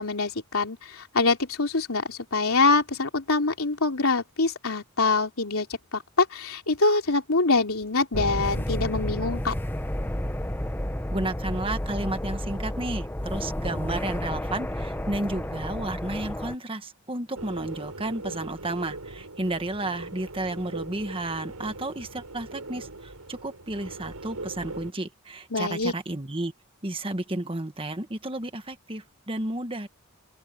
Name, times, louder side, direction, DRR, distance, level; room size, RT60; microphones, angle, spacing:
voice 1, 0.0-5.7 5.9-9.5 25.5-25.9, left 3 dB, 70° left, 3.4 m, -24 dB
sound 1, 8.1-16.5, left 1 dB, 10° left, 1.1 m, -31 dB
voice 2, 11.1-26.5 26.8-29.9, right 2 dB, 25° right, 1.5 m, -32 dB
sound 2, 17.3-24.9, right 2 dB, 85° right, 5.4 m, -40 dB
open air
head